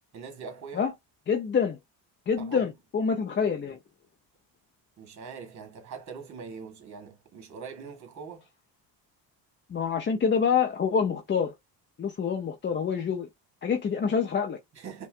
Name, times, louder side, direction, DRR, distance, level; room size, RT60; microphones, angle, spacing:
voice 1, 0.1-0.9 2.4-2.7 5.0-8.5 14.7-15.1, right 5 dB, 40° right, 1.5 m, -42 dB
voice 2, 1.3-1.8 2.3-3.8 9.7-11.5 12.0-13.3 13.6-14.6, left 6 dB, 25° left, 0.5 m, -26 dB
5.4 x 2.3 x 2.4 m
cardioid pair, 120°, 45 cm